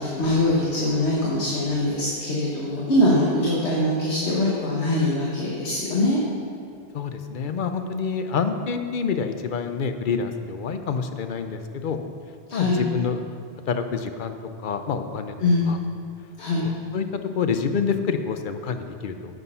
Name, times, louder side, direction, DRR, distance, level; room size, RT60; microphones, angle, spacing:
voice 1, 0.0-6.2 12.5-12.8 15.4-15.6 16.4-16.6, left 1 dB, 80° left, -4 dB, 1.7 m, -22 dB
voice 2, 6.9-12.0 12.5-13.2 13.7-14.4 14.6-15.3 15.7-15.8 16.6-19.3, left 5 dB, 55° left, 8 dB, 0.8 m, -27 dB
9.6 x 8.1 x 5.6 m, 2.3 s
omnidirectional pair, 1.1 m